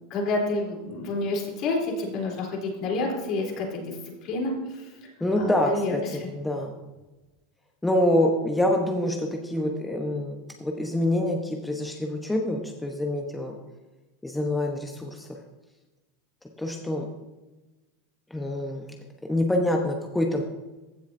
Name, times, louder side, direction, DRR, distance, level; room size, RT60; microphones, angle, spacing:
voice 1, 0.1-4.0 4.2-4.9 5.4-5.9 6.2-6.3, left 2 dB, 55° left, -1 dB, 3.5 m, -29 dB
voice 2, 5.2-6.7 7.8-13.6 14.2-15.4 16.6-17.1 18.3-18.9 19.3-20.4, left 1 dB, 10° left, 1 dB, 1.0 m, -26 dB
15.5 x 6.9 x 2.7 m, 1.1 s
hypercardioid pair, 105°, 0 cm